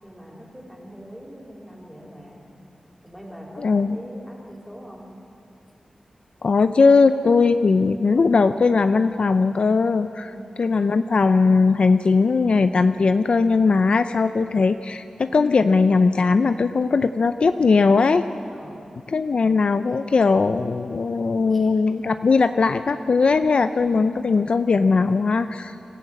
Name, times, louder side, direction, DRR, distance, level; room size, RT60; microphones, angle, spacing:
voice 1, 0.0-2.4 3.0-5.1 10.3-10.7 18.5-18.8 21.5-21.7, equal, 5° left, -1 dB, 4.4 m, -42 dB
voice 2, 3.6-4.0 6.4-10.3 10.6-18.3 19.1-25.7, left 4 dB, 60° left, 10 dB, 0.5 m, -19 dB
24.5 x 15.0 x 8.7 m, 2.8 s
wide cardioid pair, 110°, 2 cm